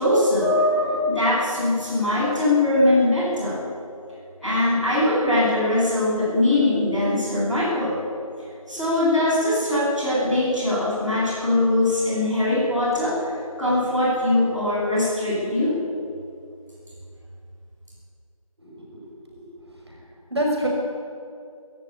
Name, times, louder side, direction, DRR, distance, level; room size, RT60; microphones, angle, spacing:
voice 1, 0.0-3.5 4.4-7.9 8.6-15.7, left 1 dB, ahead, -31 dB, 4.9 m, -21 dB
voice 2, 18.6-19.8 20.3-20.7, right 1 dB, 45° right, -2 dB, 5.9 m, -28 dB
22.0 x 14.0 x 9.6 m, 2.4 s
figure-of-eight pair, 180°, 19 cm